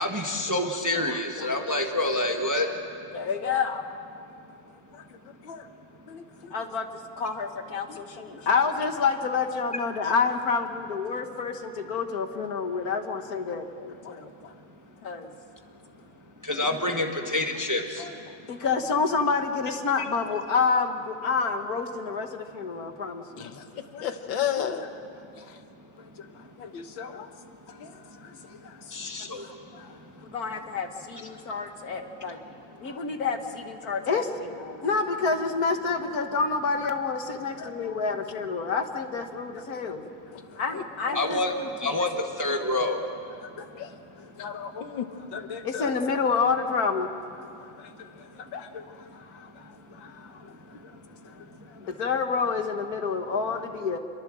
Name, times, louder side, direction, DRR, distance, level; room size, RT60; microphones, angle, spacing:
voice 1, 0.0-2.7 16.4-18.1 20.0-20.1 28.9-29.4 41.1-41.5 41.8-43.0, left 2 dB, 10° right, 3 dB, 1.2 m, -27 dB
voice 2, 0.9-1.7 2.6-2.7 4.9-5.0 5.4-5.7 6.1-6.5 7.9-8.0 8.4-8.5 14.0-14.2 14.4-14.5 18.0-18.1 23.4-24.9 25.4-25.6 26.2-27.3 27.7-29.0 29.4-29.9 32.3-32.4 32.9-33.0 37.6-38.0 40.3-41.4 43.4-43.9 44.2-45.9 47.6-48.1 48.4-50.8 51.8-51.9, left 8 dB, 80° left, 8 dB, 1.9 m, -38 dB
voice 3, 3.1-3.8 6.5-6.9 7.2-14.3 15.0-15.3 18.5-23.4 30.3-32.4 32.8-40.1 40.5-42.0 42.5-42.8 45.6-47.1 51.9-54.0, left 5 dB, 50° left, 6 dB, 1.7 m, -28 dB
27.0 x 22.5 x 7.7 m, 2.5 s
omnidirectional pair, 2.1 m